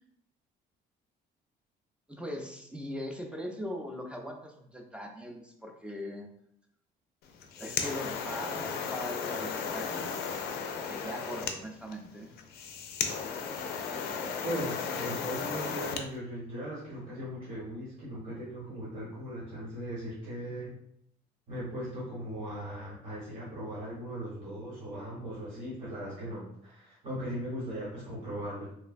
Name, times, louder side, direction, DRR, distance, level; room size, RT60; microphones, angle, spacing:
voice 1, 2.1-6.3 7.6-10.4 10.9-12.3, equal, 5° right, 2 dB, 0.4 m, -40 dB
sound 1, 7.3-16.1, left 6 dB, 70° left, 0.4 m, -35 dB
voice 2, 14.4-20.7 21.5-28.7, equal, 50° right, -8 dB, 1.1 m, -38 dB
3.1 x 2.1 x 2.5 m, 0.72 s
cardioid pair, 110°, 17 cm